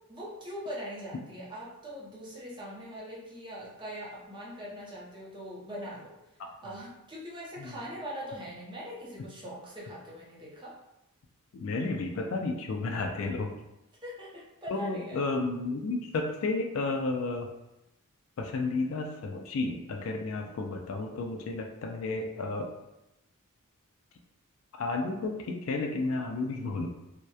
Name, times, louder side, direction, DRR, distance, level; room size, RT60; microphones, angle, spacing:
voice 1, 0.1-6.2 6.6-10.7 14.0-15.2, equal, 20° right, -6 dB, 0.6 m, -41 dB
voice 2, 11.5-13.5 14.7-17.5 18.4-22.7 24.8-26.9, left 3 dB, 65° left, 2 dB, 0.3 m, -32 dB
2.8 x 2.0 x 2.3 m, 0.92 s
head